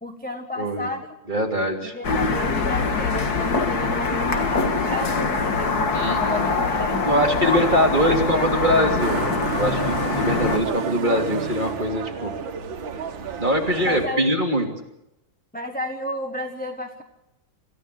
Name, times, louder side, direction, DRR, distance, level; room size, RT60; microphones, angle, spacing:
voice 1, 0.0-1.1 1.8-7.1 7.4-9.0 13.9-14.3 15.5-17.0, left 1 dB, 5° left, 3 dB, 1.3 m, -32 dB
voice 2, 0.6-0.9 1.3-2.0 5.9-6.4 7.1-9.2 9.5-12.4 13.4-14.7, equal, 20° right, 1 dB, 3.1 m, -22 dB
sound 1, 2.0-10.6, left 4 dB, 50° left, 2.2 m, -24 dB
Motorcycle, 9.0-14.1, right 6 dB, 70° right, 2.1 m, -31 dB
27.5 x 15.0 x 6.9 m, 0.86 s
omnidirectional pair, 2.2 m